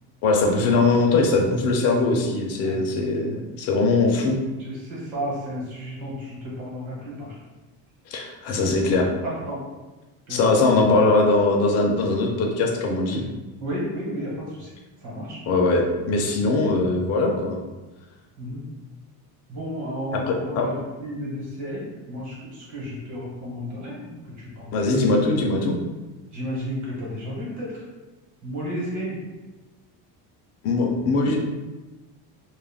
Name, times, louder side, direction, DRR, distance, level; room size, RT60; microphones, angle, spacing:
voice 1, 0.2-4.4 8.1-9.1 10.3-13.2 15.5-17.6 20.3-20.7 24.7-25.8 30.6-31.4, left 3 dB, 40° left, 1 dB, 0.5 m, -21 dB
voice 2, 4.6-7.4 8.5-8.6 9.2-9.6 10.3-10.4 13.6-14.7 15.0-15.4 16.4-16.5 18.4-18.6 19.5-20.7 21.0-24.8 26.3-27.8 28.4-29.2, equal, 45° right, -5 dB, 1.2 m, -32 dB
2.4 x 2.1 x 3.3 m, 1.2 s
cardioid pair, 155°, 39 cm